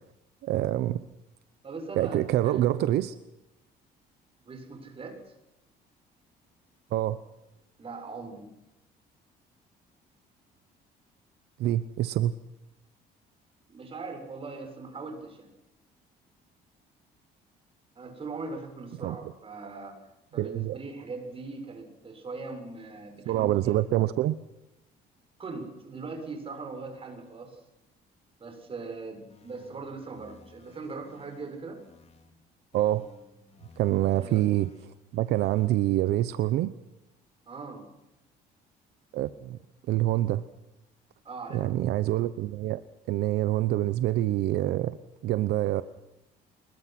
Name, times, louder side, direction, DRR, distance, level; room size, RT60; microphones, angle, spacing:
voice 1, 0.4-1.0 2.0-3.1 6.9-7.2 11.6-12.3 19.0-19.2 20.4-20.8 23.3-24.4 32.7-33.1 33.8-34.7 35.1-36.7 39.1-39.6 39.9-40.4 41.5-42.8 43.1-45.0 45.2-45.8, right 14 dB, 75° right, 14 dB, 0.9 m, -26 dB
voice 2, 1.6-2.9 4.5-5.3 7.8-8.5 13.7-15.5 17.9-23.9 25.4-27.6 28.4-31.8 34.2-34.4 37.5-37.9 41.2-41.7, right 3 dB, 35° right, 5 dB, 7.0 m, -40 dB
sound 1, 29.3-32.3 32.7-35.7, left 3 dB, 35° left, 3.8 m, -56 dB
26.5 x 21.5 x 6.0 m, 0.91 s
cardioid pair, 110°, 17 cm